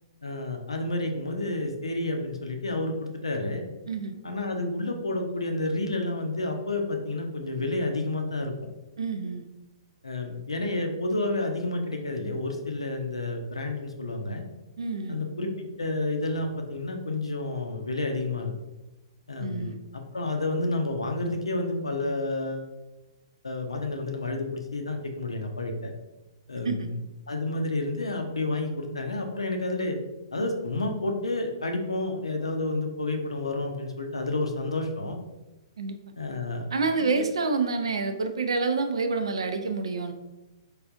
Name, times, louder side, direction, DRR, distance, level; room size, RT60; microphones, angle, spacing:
voice 1, 0.2-3.6 4.2-8.5 10.0-14.4 15.1-18.5 19.3-19.7 20.1-22.7 23.4-25.9 26.5-27.0 27.3-30.0 30.3-35.2 36.2-36.7 37.1-37.2, left 2 dB, 80° left, 4 dB, 0.6 m, -30 dB
voice 2, 3.9-4.2 9.0-9.4 14.8-15.2 19.4-19.8 26.6-26.9 35.8-36.0 36.7-40.1, right 4 dB, 70° right, 7 dB, 0.4 m, -28 dB
4.7 x 2.5 x 2.5 m, 1.0 s
figure-of-eight pair, 115°, 3 cm